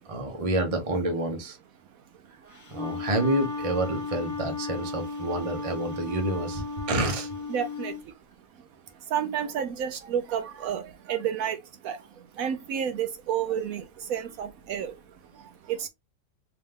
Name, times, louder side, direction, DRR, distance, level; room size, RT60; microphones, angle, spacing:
voice 1, 0.1-1.6 2.7-7.3, right 1 dB, 30° right, 0.8 m, -28 dB
Wind instrument woodwind instrument, 2.5-8.0, left 3 dB, 25° left, 0.4 m, -35 dB
voice 2, 7.5-8.2 8.5-8.6 8.9-15.9, right 8 dB, 75° right, 1.0 m, -31 dB
3.3 x 2.9 x 3.5 m
omnidirectional pair, 1.6 m